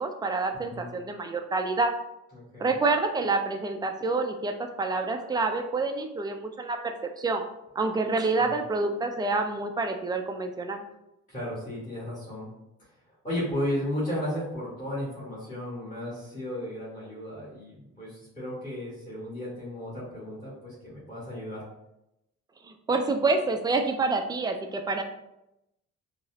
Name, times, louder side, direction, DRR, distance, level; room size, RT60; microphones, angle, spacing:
voice 1, 0.0-1.9 2.6-7.4 7.8-10.8 22.6-25.0, right 3 dB, 15° right, 5 dB, 0.3 m, -27 dB
voice 2, 2.3-2.7 8.4-8.5 11.3-12.5 13.2-21.7, left 1 dB, 25° left, -9 dB, 1.4 m, -34 dB
3.9 x 2.0 x 2.4 m, 0.87 s
cardioid pair, 90°, 30 cm